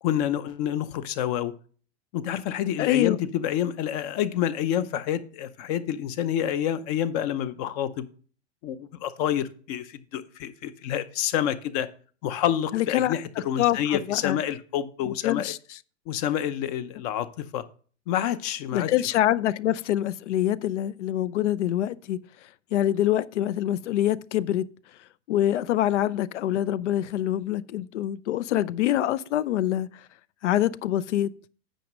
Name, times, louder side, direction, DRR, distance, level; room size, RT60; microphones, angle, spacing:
voice 1, 0.0-1.5 2.1-8.1 8.6-11.9 12.2-15.5 16.1-17.6 18.1-18.9, left 10 dB, 35° left, 0.6 m, -28 dB
voice 2, 2.8-3.2 12.7-13.1 13.6-14.4 15.1-15.8 18.7-22.2 22.7-24.6 25.3-29.9 30.4-31.3, left 12 dB, 75° left, 0.7 m, -25 dB
9.2 x 5.4 x 6.0 m
supercardioid pair, 150°, 36 cm